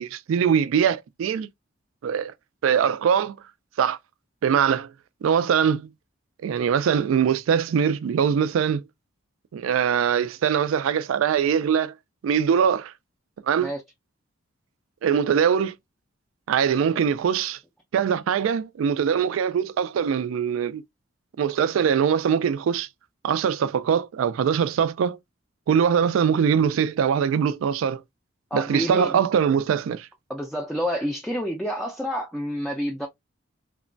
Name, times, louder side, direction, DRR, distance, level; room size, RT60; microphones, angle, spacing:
voice 1, 0.0-1.5 2.0-2.3 2.6-3.3 3.8-4.0 4.4-4.9 5.2-5.9 6.4-8.8 9.5-11.9 12.2-12.9 13.4-13.7 15.0-15.7 16.5-17.6 17.9-20.8 21.4-22.9 23.2-25.2 25.7-28.0 28.5-30.1, right 7 dB, 80° right, 0.3 m, -22 dB
voice 2, 28.5-29.2 30.3-33.1, equal, ahead, 0.3 m, -28 dB
2.9 x 2.1 x 2.5 m
head